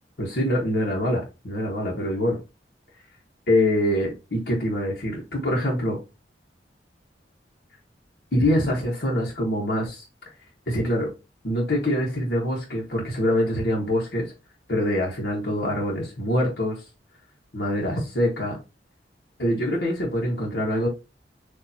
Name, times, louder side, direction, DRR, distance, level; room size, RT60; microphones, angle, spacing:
voice 1, 0.2-2.4 3.5-6.0 8.3-10.0 10.7-11.1 11.4-14.2 14.7-16.8 17.5-18.6 19.4-20.9, left 1 dB, 65° left, -3 dB, 1.3 m, -24 dB
6.8 x 2.7 x 2.8 m, 0.27 s
head